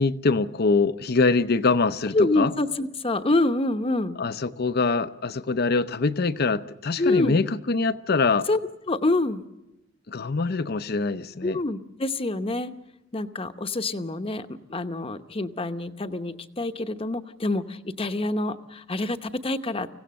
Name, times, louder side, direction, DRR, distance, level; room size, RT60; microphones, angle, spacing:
voice 1, 0.0-2.5 4.2-8.5 10.1-11.6, left 4 dB, 55° left, 0.7 m, -24 dB
voice 2, 2.1-4.2 7.0-7.4 8.5-8.6 8.9-9.4 11.4-12.7 13.1-19.9, left 2 dB, 30° left, 0.9 m, -26 dB
25.0 x 16.5 x 7.6 m
head